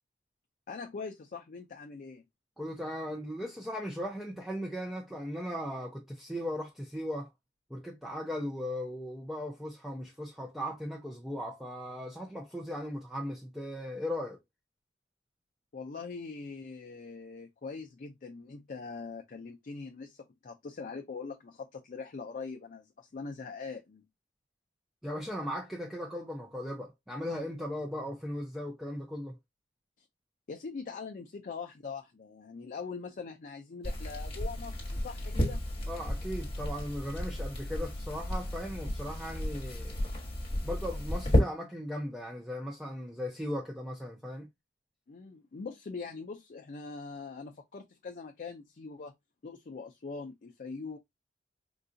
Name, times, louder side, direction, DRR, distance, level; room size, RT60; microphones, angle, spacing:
voice 1, 0.7-2.2 15.7-24.0 30.5-35.6 45.1-49.1 49.4-51.0, left 4 dB, 45° left, 0.4 m, -42 dB
voice 2, 2.6-7.3 7.7-14.4 25.0-29.4 35.9-40.0 40.6-44.5, equal, ahead, 0.6 m, -37 dB
sound 1, 33.8-41.4, left 1 dB, 30° left, 1.2 m, -32 dB
3.8 x 2.3 x 2.5 m
head